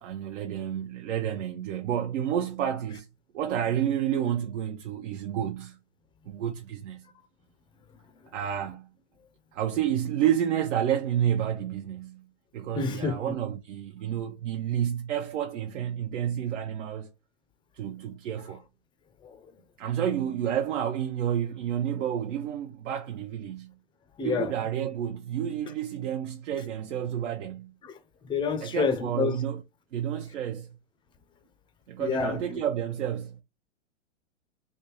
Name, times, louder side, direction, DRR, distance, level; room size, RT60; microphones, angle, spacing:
voice 1, 0.0-3.1 3.3-5.8 6.3-7.0 8.3-8.9 9.5-12.2 12.5-17.1 17.7-18.6 19.8-23.7 24.2-27.7 28.6-29.6 29.9-30.7 31.9-33.4, right 10 dB, 70° right, 0.7 m, -30 dB
voice 2, 12.8-13.4 19.2-19.5 24.2-24.5 27.8-28.0 28.3-29.4 32.0-32.6, left 5 dB, 15° left, 0.4 m, -29 dB
3.4 x 2.6 x 3.0 m
hypercardioid pair, 110°, 38 cm